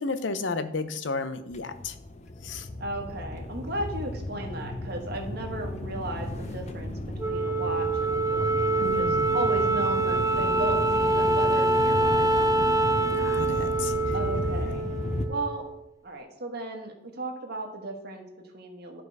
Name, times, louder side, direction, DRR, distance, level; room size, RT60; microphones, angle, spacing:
voice 1, 0.0-2.0 2.4-2.7 8.8-9.4 13.2-14.1, left 3 dB, 85° left, 11 dB, 0.7 m, -33 dB
sound 1, 1.5-15.3, left 1 dB, 40° left, 0.7 m, -34 dB
voice 2, 2.8-13.1 14.1-14.8 15.3-15.7 16.0-19.0, right 1 dB, 60° right, 3 dB, 1.5 m, -35 dB
Wind instrument woodwind instrument, 7.2-15.8, right 2 dB, 20° right, 0.5 m, -25 dB
11.5 x 5.0 x 4.7 m, 0.85 s
head